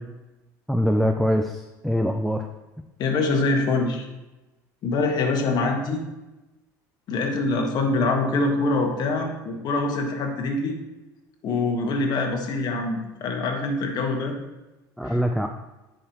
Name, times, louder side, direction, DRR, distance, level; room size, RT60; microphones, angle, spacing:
voice 1, 0.7-2.5 15.0-15.5, equal, ahead, 5 dB, 0.4 m, -23 dB
voice 2, 3.0-4.0 4.8-6.0 7.1-10.8 11.4-14.4 15.0-15.2, left 3 dB, 50° left, 2 dB, 1.5 m, -24 dB
9.8 x 5.1 x 3.0 m, 1.1 s
supercardioid pair, 110°, 9 cm